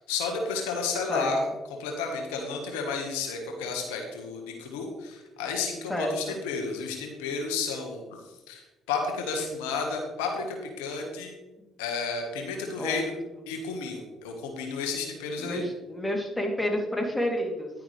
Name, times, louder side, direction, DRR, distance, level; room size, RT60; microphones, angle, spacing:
voice 1, 0.1-1.5 1.8-8.0 8.5-11.3 11.8-13.1 13.5-15.6, left 4 dB, 85° left, 2 dB, 1.5 m, -32 dB
voice 2, 5.9-6.3 12.8-13.1 15.4-17.7, left 1 dB, 15° left, 1 dB, 3.0 m, -29 dB
10.5 x 10.0 x 3.4 m, 1.1 s
hypercardioid pair, 55°, 0 cm